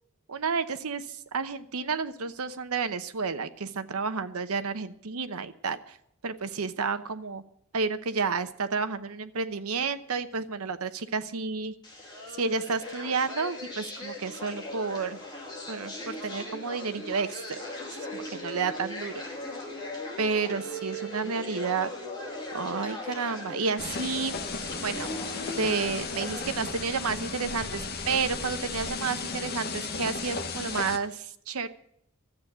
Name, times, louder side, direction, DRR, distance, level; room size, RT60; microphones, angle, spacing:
voice 1, 0.3-6.0 6.2-7.4 7.7-11.7 12.4-15.2 15.7-17.6 18.1-19.1 20.2-21.9 22.5-24.4 24.8-25.1 25.6-31.7, right 5 dB, 85° right, 11 dB, 0.9 m, -31 dB
sound 1, 11.8-26.6, left 1 dB, 20° left, 2.5 m, -39 dB
sound 2, 23.8-31.0, left 4 dB, 45° left, 1.1 m, -35 dB
12.5 x 8.3 x 9.3 m, 0.72 s
head